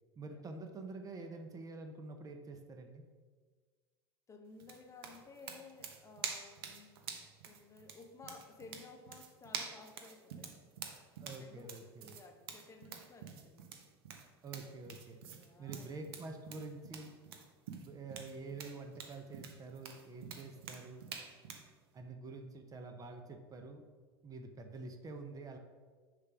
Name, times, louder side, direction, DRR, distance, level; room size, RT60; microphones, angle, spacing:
voice 1, 0.2-3.0 11.2-12.1 14.4-15.2 15.6-17.1 17.8-21.0 21.9-23.8 24.2-25.6, right 3 dB, 25° right, 5 dB, 0.7 m, -47 dB
voice 2, 4.3-7.0 7.4-10.6 11.4-11.8 12.1-13.8 15.3-16.0, left 4 dB, 25° left, 4 dB, 0.9 m, -55 dB
sound 1, 4.6-21.7, right 7 dB, 70° right, 0.8 m, -47 dB
6.5 x 3.4 x 6.0 m, 1.5 s
hypercardioid pair, 80°, 13 cm